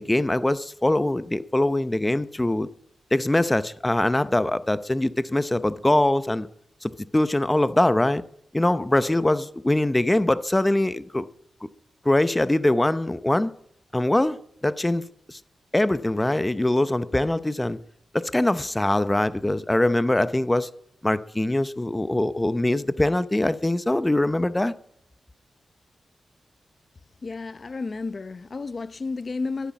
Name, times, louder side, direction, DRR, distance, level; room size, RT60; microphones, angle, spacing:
voice 1, 0.0-2.7 3.1-6.5 6.8-8.2 8.5-11.3 11.6-11.7 12.0-13.5 13.9-14.4 14.6-15.4 15.7-17.8 18.1-20.7 21.0-24.7, left 1 dB, 15° left, 0.7 m, -23 dB
voice 2, 27.2-29.7, left 3 dB, 45° left, 0.8 m, -32 dB
13.0 x 11.5 x 6.0 m
cardioid pair, 65°, 0 cm